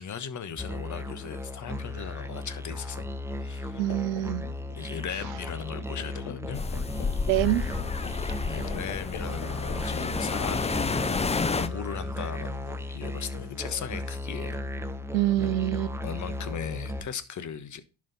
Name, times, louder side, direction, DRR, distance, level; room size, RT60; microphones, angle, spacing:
voice 1, 0.0-3.1 3.4-4.3 4.8-6.6 8.5-14.6 16.0-17.8, left 7 dB, 45° left, 1.3 m, -38 dB
Musical instrument, 0.6-17.0, left 1 dB, 5° right, 1.1 m, -36 dB
sound 1, 3.7-14.2, left 6 dB, 65° left, 1.6 m, -46 dB
voice 2, 3.8-4.5 7.3-7.7 15.1-16.0, right 15 dB, 85° right, 0.7 m, -26 dB
sound 2, 6.5-11.7, left 4 dB, 15° left, 0.6 m, -30 dB
11.0 x 5.1 x 4.1 m
hypercardioid pair, 60°, 41 cm